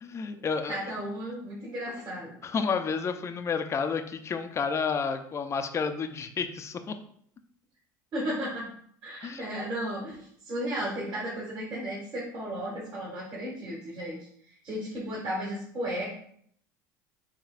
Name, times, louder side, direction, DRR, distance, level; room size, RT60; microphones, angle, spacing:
voice 1, 0.0-0.8 2.4-6.9 9.2-9.5, left 5 dB, 30° left, 7 dB, 0.4 m, -30 dB
voice 2, 0.7-2.3 8.1-8.6 9.0-14.2 14.4-16.1, equal, 45° right, -5 dB, 1.7 m, -34 dB
4.7 x 3.5 x 2.4 m, 0.64 s
hypercardioid pair, 80°, 10 cm